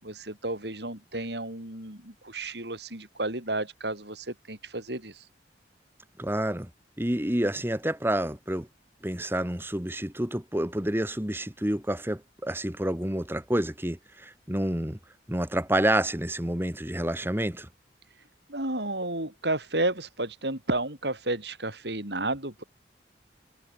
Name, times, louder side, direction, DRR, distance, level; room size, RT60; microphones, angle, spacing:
voice 1, 0.0-5.2 18.5-22.6, right 2 dB, 70° right, 7.3 m, -32 dB
voice 2, 6.2-6.7 7.0-8.7 9.0-15.0 15.3-17.7, right 1 dB, 15° right, 2.0 m, -28 dB
head